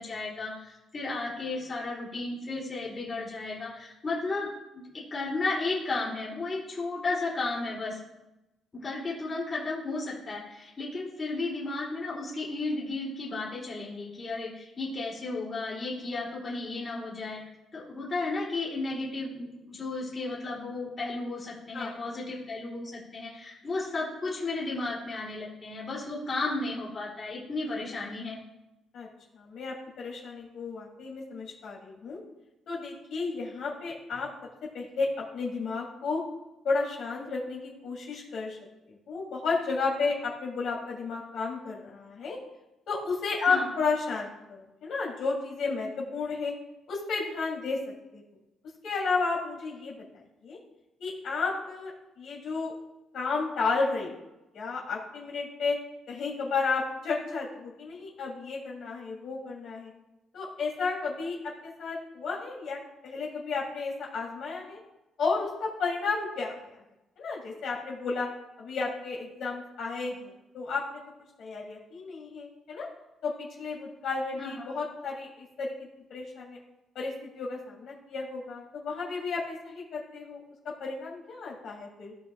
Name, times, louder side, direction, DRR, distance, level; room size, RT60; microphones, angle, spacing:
voice 1, 0.0-4.8 5.1-8.0 8.7-17.4 17.7-28.4 43.4-43.7 74.4-74.7, left 3 dB, 35° left, -5 dB, 3.1 m, -34 dB
voice 2, 29.3-32.2 32.7-34.3 34.7-36.2 36.6-38.6 38.9-42.4 42.9-46.5 46.9-47.8 48.1-48.2 48.8-50.0 50.4-50.6 51.0-51.9 52.2-52.7 53.1-54.1 54.5-55.8 56.1-59.9 60.3-64.8 65.2-66.5 67.2-68.3 68.6-71.0 71.4-72.9 73.2-75.7 76.1-76.6 76.9-80.4 80.8-82.1, left 4 dB, 70° left, -4 dB, 3.2 m, -32 dB
16.0 x 6.0 x 2.4 m, 0.96 s
cardioid pair, 90°, 0 cm